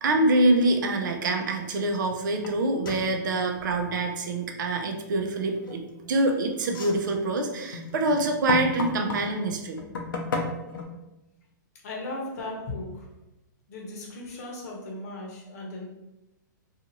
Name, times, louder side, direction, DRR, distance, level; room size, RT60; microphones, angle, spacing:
voice 1, 0.0-9.8, right 2 dB, 70° right, 4 dB, 0.5 m, -25 dB
sound 1, 2.4-2.5 2.8-3.1 5.6-6.0 6.6-9.3 9.8-10.8, left 3 dB, 90° left, 0.6 m, -33 dB
voice 2, 11.8-13.1 13.7-15.8, left 2 dB, 50° left, -1 dB, 0.8 m, -36 dB
2.6 x 2.4 x 2.8 m, 0.96 s
hypercardioid pair, 150°, 11 cm